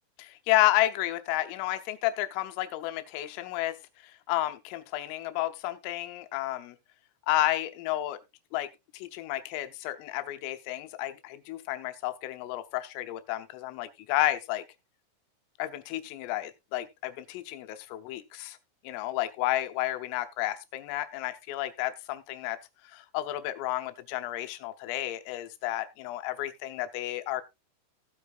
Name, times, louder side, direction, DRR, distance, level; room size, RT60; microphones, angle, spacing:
voice 1, 0.2-3.8 4.0-6.8 7.3-8.2 8.5-8.7 8.9-14.7 15.6-18.6 18.9-22.6 22.9-27.4, left 15 dB, 85° left, 3.5 m, -31 dB
16.0 x 8.3 x 2.4 m
omnidirectional pair, 5.8 m